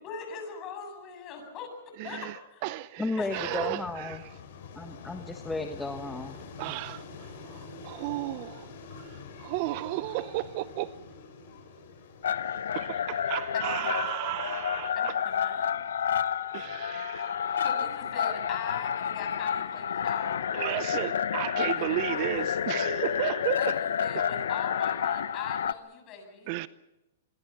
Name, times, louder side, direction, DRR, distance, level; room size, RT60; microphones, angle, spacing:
voice 1, 0.0-1.7 2.0-2.6 3.2-3.7 13.5-14.1 14.9-15.7 17.6-20.5 22.1-23.1 23.4-26.6, left 6 dB, 30° left, 7.9 m, -41 dB
voice 2, 2.0-4.2 6.6-10.9 12.7-15.1 16.5-17.6 20.5-23.8 26.5-26.7, right 18 dB, 45° right, 0.7 m, -34 dB
voice 3, 3.0-4.2 4.7-6.4, left 2 dB, 5° left, 1.3 m, -34 dB
sound 1, 3.2-17.8, left 4 dB, 60° left, 6.9 m, -47 dB
sound 2, 12.2-25.7, left 8 dB, 85° left, 1.0 m, -30 dB
26.0 x 22.0 x 6.0 m
hypercardioid pair, 140°, 0 cm